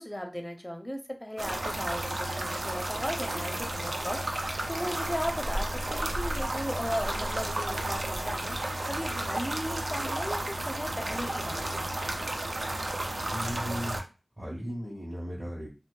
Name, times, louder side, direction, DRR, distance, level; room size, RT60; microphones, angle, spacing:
voice 1, 0.0-11.9, equal, 10° left, 3 dB, 0.5 m, -36 dB
sound 1, 1.4-14.0, right 1 dB, 80° right, 0.4 m, -32 dB
voice 2, 13.2-14.0 14.4-15.7, equal, 30° right, -6 dB, 1.2 m, -36 dB
2.6 x 2.4 x 2.2 m, 0.32 s
wide cardioid pair, 60°, 0 cm